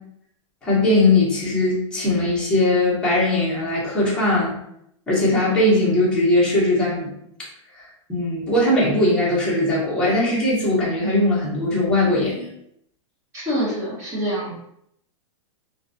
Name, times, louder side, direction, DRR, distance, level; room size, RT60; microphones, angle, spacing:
voice 1, 0.6-4.5 5.1-7.1 8.1-12.5, left 1 dB, 5° left, -8 dB, 0.8 m, -19 dB
voice 2, 13.3-14.6, equal, 20° right, -7 dB, 1.0 m, -25 dB
2.3 x 2.2 x 2.5 m, 0.74 s
supercardioid pair, 150°, 16 cm